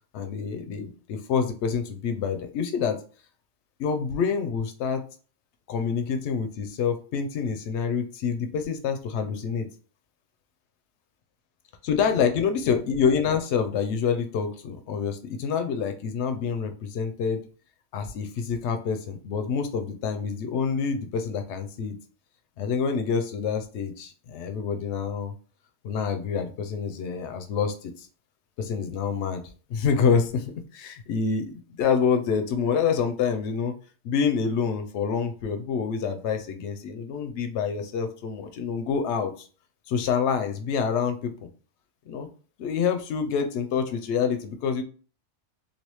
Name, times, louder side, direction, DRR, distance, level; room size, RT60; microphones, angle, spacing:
voice 1, 0.1-3.0 3.8-5.0 5.7-9.7 11.8-17.4 17.9-21.9 22.6-25.3 25.8-28.1 28.6-29.4 29.7-33.7 34.0-39.3 39.9-41.3 42.1-42.3 42.6-44.8, left 6 dB, 70° left, 7 dB, 0.8 m, -27 dB
3.3 x 2.4 x 3.0 m, 0.39 s
omnidirectional pair, 1.3 m